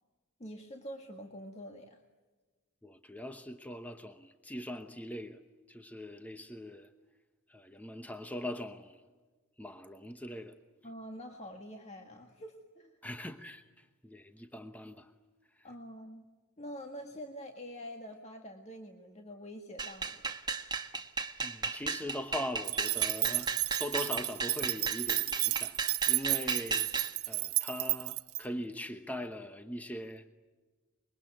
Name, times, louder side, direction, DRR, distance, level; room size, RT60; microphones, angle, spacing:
voice 1, 0.4-2.0 10.8-12.9 15.6-16.2 16.6-20.2, equal, 30° left, 1.8 m, -46 dB
voice 2, 2.8-5.4 5.7-6.9 7.5-9.0 9.6-10.6 13.0-15.1 15.6-15.7 21.4-23.5 23.8-26.9 27.2-30.3, equal, 5° left, 1.0 m, -41 dB
sound 1, 19.8-27.1, right 5 dB, 20° right, 1.2 m, -35 dB
sound 2, 22.6-28.4, right 18 dB, 80° right, 1.1 m, -32 dB
26.0 x 22.5 x 8.9 m
head